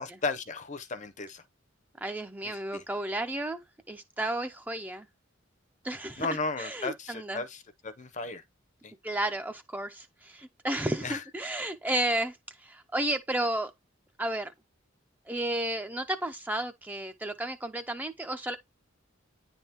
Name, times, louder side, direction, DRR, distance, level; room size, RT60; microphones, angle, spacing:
voice 1, 0.0-1.4 2.4-2.8 6.2-8.4 8.8-8.9 11.0-11.2, left 3 dB, 35° left, 0.6 m, -35 dB
voice 2, 2.0-3.6 3.9-5.1 5.8-6.3 6.6-7.4 9.0-13.7 14.2-14.5 15.3-18.6, right 1 dB, 10° right, 0.4 m, -32 dB
9.7 x 3.5 x 2.9 m
head